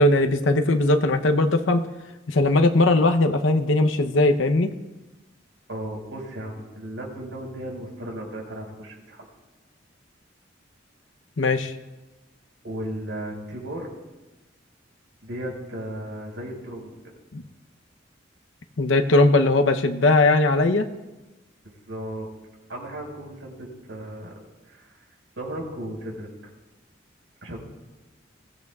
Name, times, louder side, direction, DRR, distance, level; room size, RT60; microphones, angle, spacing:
voice 1, 0.0-1.8 2.3-4.7 11.4-11.7 17.3-17.4 18.8-20.9, left 2 dB, 85° left, 6 dB, 0.8 m, -19 dB
voice 2, 5.7-9.3 12.6-13.9 15.2-17.0 21.9-22.3 22.7-24.4 24.7-24.9 25.4-26.3 27.4-27.6, right 1 dB, 80° right, -1 dB, 5.2 m, -35 dB
22.0 x 16.0 x 2.4 m, 1.1 s
head